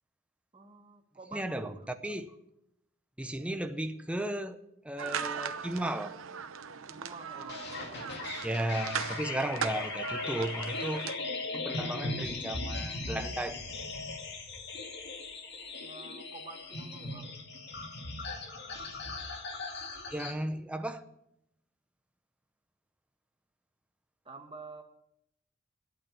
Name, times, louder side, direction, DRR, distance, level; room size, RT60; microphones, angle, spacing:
voice 1, 0.5-1.9 6.9-8.0 15.7-17.3 24.2-24.8, right 3 dB, 25° right, 4 dB, 1.6 m, -48 dB
voice 2, 1.3-1.7 2.0-2.3 3.2-4.6 4.8-6.1 8.4-11.0 11.5-13.6 20.1-21.1, right 1 dB, 5° right, 7 dB, 0.7 m, -35 dB
sound 1, 5.0-11.2, right 7 dB, 75° right, 0.8 m, -39 dB
sound 2, 7.5-20.3, left 3 dB, 55° left, 2.2 m, -38 dB
12.5 x 8.6 x 8.6 m, 0.79 s
head